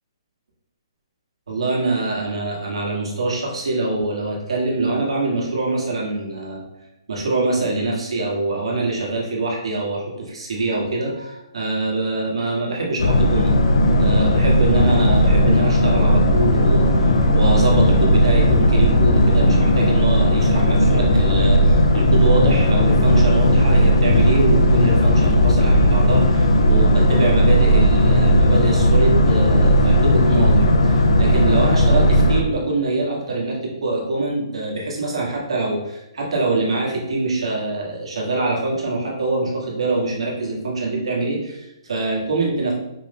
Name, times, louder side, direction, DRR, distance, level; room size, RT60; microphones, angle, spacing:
voice 1, 1.5-6.6 7.1-13.6 14.0-42.7, right 2 dB, 85° right, -3 dB, 1.4 m, -24 dB
Boat Water vehicle, 13.0-32.4, equal, 75° left, 0.6 m, -16 dB
sound 1, 14.8-20.1, left 2 dB, 5° left, 0.5 m, -34 dB
5.1 x 2.2 x 3.4 m, 0.92 s
hypercardioid pair, 160°, 3 cm